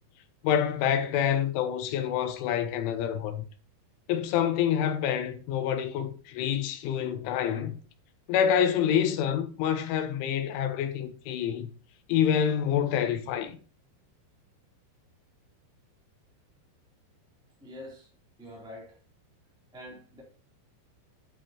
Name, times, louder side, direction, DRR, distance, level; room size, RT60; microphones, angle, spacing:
voice 1, 0.4-3.5 4.1-7.8 8.3-11.7 12.1-13.6, left 9 dB, 85° left, 3.5 m, -27 dB
voice 2, 17.6-18.1 18.4-19.0 19.7-20.2, left 1 dB, ahead, 1.6 m, -45 dB
9.4 x 7.9 x 2.9 m
omnidirectional pair, 5.4 m